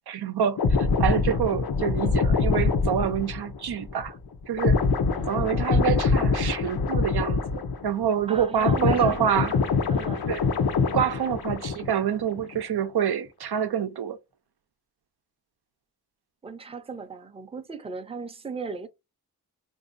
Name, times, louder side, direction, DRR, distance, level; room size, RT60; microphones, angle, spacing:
voice 1, 0.1-4.2 4.5-4.8 5.2-9.5 10.3-10.4 10.9-14.2, right 9 dB, 90° right, 0.7 m, -27 dB
sound 1, 0.6-8.1 8.3-12.1 12.3-12.6, left 4 dB, 70° left, 0.7 m, -24 dB
voice 2, 5.1-5.9 8.3-9.2 9.9-10.3 16.4-18.9, right 4 dB, 15° right, 0.5 m, -37 dB
3.7 x 2.7 x 2.5 m
wide cardioid pair, 135°, 38 cm